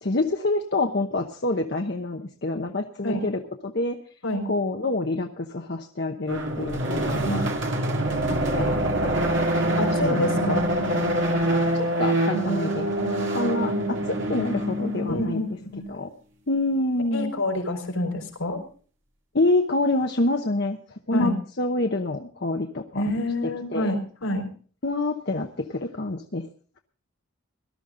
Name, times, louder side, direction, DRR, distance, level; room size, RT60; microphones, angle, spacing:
voice 1, 0.0-4.0 4.4-7.4 8.3-9.2 10.0-10.2 11.7-12.9 13.3-15.5 15.9-16.1 16.5-17.3 19.3-21.3 21.6-23.0 23.7-24.0 24.8-26.5, left 2 dB, 50° left, 3 dB, 0.9 m, -27 dB
sound 1, 6.3-15.5, right 1 dB, 55° right, 2.4 m, -25 dB
voice 2, 9.8-10.7 15.1-15.8 17.1-18.6 21.1-21.4 22.9-24.5, left 1 dB, 75° left, 3 dB, 5.0 m, -27 dB
18.5 x 12.5 x 3.8 m, 0.43 s
head